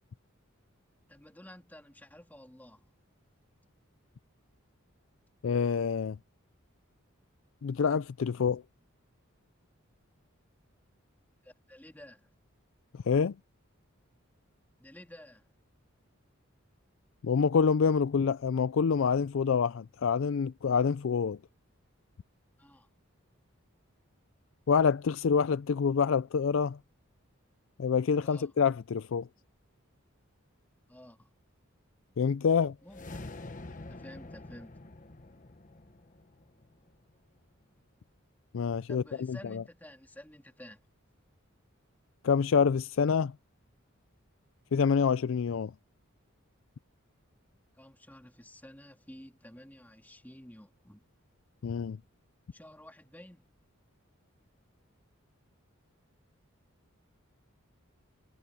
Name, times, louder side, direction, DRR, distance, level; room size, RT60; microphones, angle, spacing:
voice 1, 1.1-2.9 11.4-12.3 14.8-15.5 22.6-22.9 28.2-28.5 30.9-31.3 32.8-33.1 33.9-34.8 38.9-40.8 47.8-51.0 52.5-53.5, left 1 dB, 10° left, 2.9 m, -51 dB
voice 2, 5.4-6.2 7.6-8.6 13.1-13.3 17.2-21.4 24.7-26.8 27.8-29.3 32.2-32.7 38.5-39.6 42.2-43.3 44.7-45.7 51.6-52.0, left 6 dB, 65° left, 0.4 m, -27 dB
sound 1, 32.8-37.2, left 2 dB, 40° left, 1.1 m, -46 dB
head